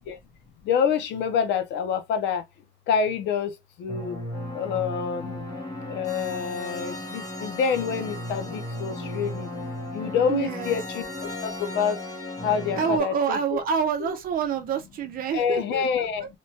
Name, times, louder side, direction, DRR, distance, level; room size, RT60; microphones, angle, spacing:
voice 1, 0.7-2.4 2.9-3.5 3.8-4.2 4.5-5.4 5.9-9.5 9.9-11.0 11.4-12.0 12.4-13.6 14.0-14.2 15.3-16.3, left 7 dB, 65° left, 0.6 m, -27 dB
sound 1, 3.9-13.0, left 1 dB, 20° left, 0.8 m, -35 dB
voice 2, 10.3-10.7 12.8-16.1, right 7 dB, 45° right, 0.7 m, -27 dB
2.9 x 2.2 x 2.7 m
cardioid pair, 165°, 20 cm